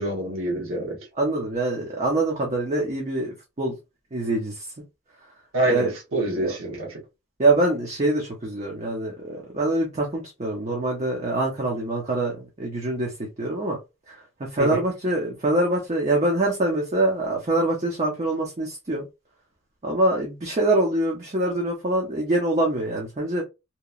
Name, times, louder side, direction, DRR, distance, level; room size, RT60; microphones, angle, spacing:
voice 1, 0.0-1.0 5.5-7.0 14.6-14.8, right 1 dB, 80° right, 1.0 m, -26 dB
voice 2, 1.2-3.7 4.1-4.7 5.7-5.9 6.3-6.5 7.4-13.1 13.4-13.8 14.1-14.2 14.5-19.1 19.8-23.4, right 2 dB, 35° right, 0.6 m, -24 dB
2.9 x 2.2 x 2.3 m
head